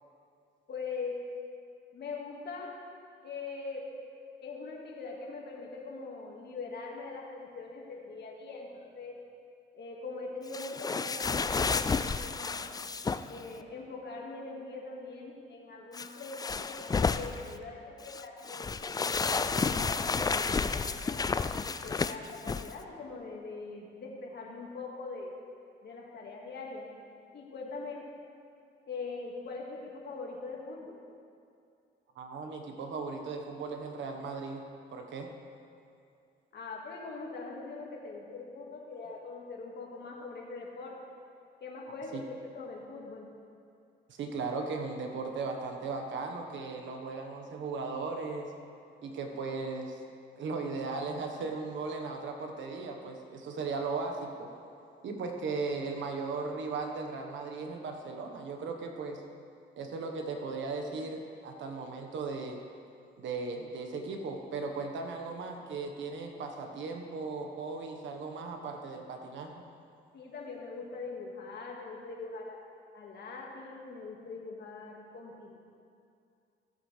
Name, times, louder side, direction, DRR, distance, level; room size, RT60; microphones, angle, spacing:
voice 1, 0.7-1.2 1.9-2.7 3.2-3.9 4.4-9.2 9.7-12.7 13.3-21.2 21.8-25.3 25.8-26.9 27.3-28.1 28.9-31.0 36.5-41.0 41.6-43.3 70.1-72.6 72.9-75.6, left 4 dB, 60° left, -1 dB, 2.0 m, -42 dB
sound 1, 10.5-13.4 15.9-17.5 18.0-22.7, left 4 dB, 20° left, 0.3 m, -31 dB
voice 2, 32.1-34.6 34.9-35.3 42.1-42.2 44.1-48.5 49.0-50.0 50.4-54.5 55.0-59.2 59.8-62.6 63.2-69.5, right 4 dB, 70° right, 3 dB, 1.4 m, -37 dB
15.5 x 8.4 x 3.4 m, 2.5 s
cardioid pair, 90°, 20 cm